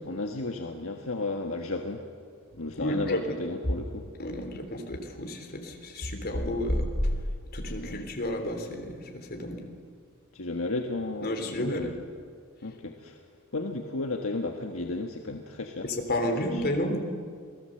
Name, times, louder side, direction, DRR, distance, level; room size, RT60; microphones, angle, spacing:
voice 1, 0.0-2.0 2.6-4.1 7.8-8.1 10.3-12.0 12.6-13.2 13.5-15.9 16.2-16.7, left 2 dB, 70° left, 3 dB, 1.6 m, -34 dB
voice 2, 2.8-3.4 4.2-7.1 7.5-9.6 11.2-11.9 15.8-17.0, left 1 dB, 45° left, 4 dB, 3.6 m, -31 dB
27.5 x 18.5 x 7.9 m, 2.1 s
head